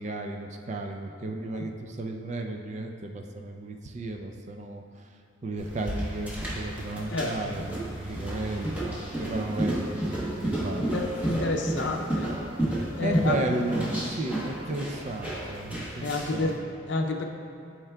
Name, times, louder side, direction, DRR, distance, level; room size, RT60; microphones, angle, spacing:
voice 1, 0.0-5.1 5.4-10.9 13.0-16.5, right 2 dB, 35° right, 3 dB, 0.4 m, -34 dB
sound 1, 5.6-16.5, right 1 dB, 5° right, 0.9 m, -32 dB
voice 2, 7.1-7.6 10.8-12.3 13.0-13.4 16.0-16.6 16.9-17.2, left 2 dB, 60° left, 3 dB, 0.5 m, -29 dB
11.0 x 4.5 x 2.3 m, 2.5 s
head